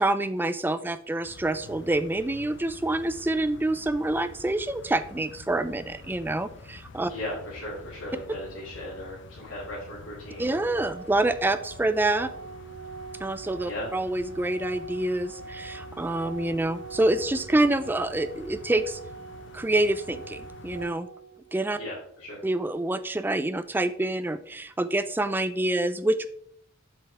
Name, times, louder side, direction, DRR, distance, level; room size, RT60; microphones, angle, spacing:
voice 1, 0.0-7.1 10.4-12.3 13.2-19.0 19.5-21.1 21.5-21.8 22.4-26.3, right 2 dB, 10° right, 12 dB, 0.3 m, -27 dB
sound 1, 1.2-20.9, left 3 dB, 60° left, 0.5 m, -47 dB
voice 2, 7.0-10.6 13.7-13.9 21.8-22.4, left 1 dB, 90° left, -9 dB, 2.4 m, -37 dB
Organ, 10.8-21.8, right 5 dB, 80° right, 0.5 m, -43 dB
7.5 x 5.9 x 3.4 m, 0.66 s
head